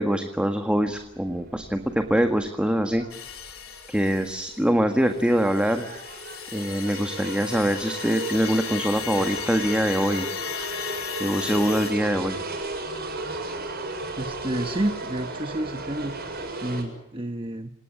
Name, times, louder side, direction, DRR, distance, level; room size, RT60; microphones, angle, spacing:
voice 1, 0.0-3.0 3.9-5.8 6.5-10.3 11.2-12.4, equal, 5° right, 6 dB, 1.7 m, -24 dB
sound 1, 0.8-16.8, right 2 dB, 50° right, 7.6 m, -36 dB
sound 2, 3.1-4.5 5.1-11.9, left 9 dB, 85° left, 3.1 m, -36 dB
voice 2, 14.2-16.2 16.6-17.7, right 1 dB, 25° right, 8 dB, 1.1 m, -30 dB
28.0 x 19.0 x 8.7 m, 0.87 s
head